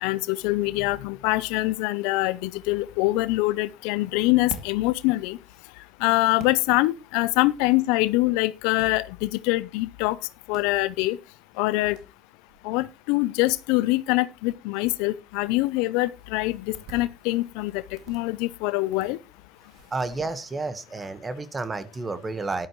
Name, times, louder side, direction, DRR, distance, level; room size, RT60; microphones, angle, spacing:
voice 1, 0.0-5.4 6.0-10.2 10.5-11.2 11.6-12.0 12.6-17.8 18.1-19.2, left 20 dB, 85° left, 0.5 m, -24 dB
sound 1, 4.0-20.5, right 5 dB, 70° right, 2.4 m, -51 dB
voice 2, 19.9-22.7, right 3 dB, 25° right, 1.3 m, -31 dB
12.5 x 11.0 x 3.1 m
cardioid pair, 105°, 0 cm